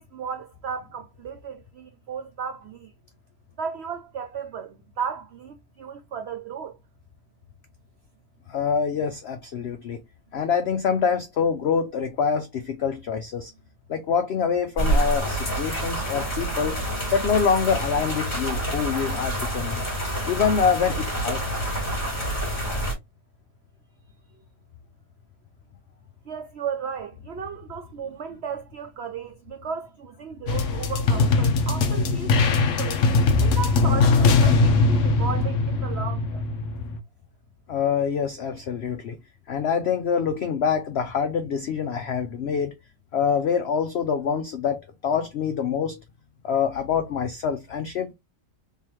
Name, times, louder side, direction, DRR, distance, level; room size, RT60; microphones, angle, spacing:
voice 1, 0.0-2.9 3.6-6.8 26.2-33.0 33.4-36.4, right 6 dB, 80° right, 0.5 m, -35 dB
voice 2, 8.5-10.0 10.3-13.5 13.9-16.8 17.1-19.8 20.3-21.7 37.7-39.2 39.5-42.7 43.1-46.0 46.4-48.1, left 6 dB, 90° left, 0.5 m, -25 dB
sound 1, 14.8-22.9, right 1 dB, 25° left, 2.1 m, -27 dB
sound 2, 30.5-37.0, left 3 dB, 60° left, 1.0 m, -21 dB
3.8 x 3.1 x 2.9 m
omnidirectional pair, 1.7 m